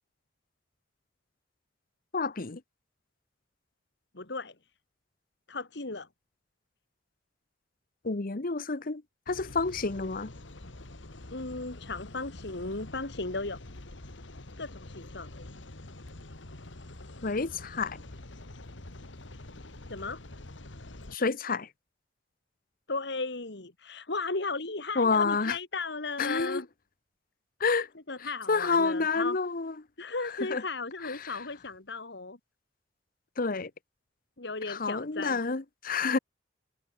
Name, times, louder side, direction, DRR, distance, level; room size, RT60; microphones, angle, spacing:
voice 1, 2.1-2.6 8.0-9.0 9.3-10.3 17.2-18.0 21.1-21.7 25.0-25.6 26.2-26.6 27.6-27.9 28.5-29.7 30.2-30.6 31.0-31.3 33.4-33.7 34.7-36.2, left 4 dB, 50° left, 1.0 m, -29 dB
voice 2, 4.1-4.5 5.5-6.1 11.3-13.6 14.6-15.5 19.9-20.2 22.9-26.7 28.1-29.4 30.0-32.4 34.4-35.4, left 3 dB, 65° left, 2.2 m, -36 dB
sound 1, 9.3-21.1, left 2 dB, 90° left, 2.0 m, -46 dB
head